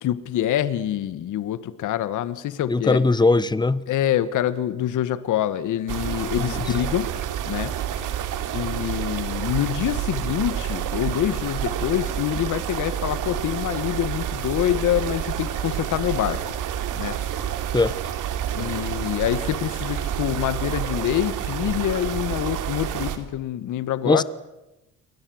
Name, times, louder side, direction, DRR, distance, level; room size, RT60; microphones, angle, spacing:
voice 1, 0.0-3.1 3.9-7.1 7.5-8.0 8.5-16.5 16.9-17.2 18.5-24.2, left 12 dB, 70° left, 1.5 m, -26 dB
voice 2, 2.7-3.8 6.4-6.6 17.7-17.9 24.0-24.2, left 3 dB, 15° left, 1.1 m, -20 dB
sound 1, 5.9-23.2, right 10 dB, 80° right, 2.9 m, -29 dB
29.5 x 22.5 x 7.9 m
cardioid pair, 115°, 31 cm